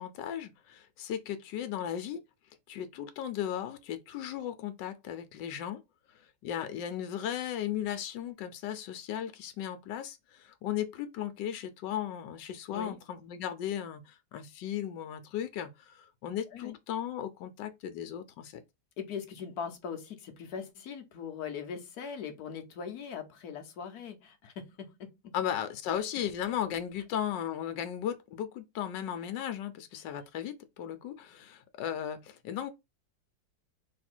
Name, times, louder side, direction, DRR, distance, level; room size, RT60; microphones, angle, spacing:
voice 1, 0.0-2.2 2.7-5.8 6.4-18.6 25.3-32.7, left 10 dB, 85° left, 1.4 m, -36 dB
voice 2, 19.0-25.2, left 6 dB, 65° left, 1.2 m, -40 dB
3.3 x 3.2 x 4.3 m
omnidirectional pair, 1.9 m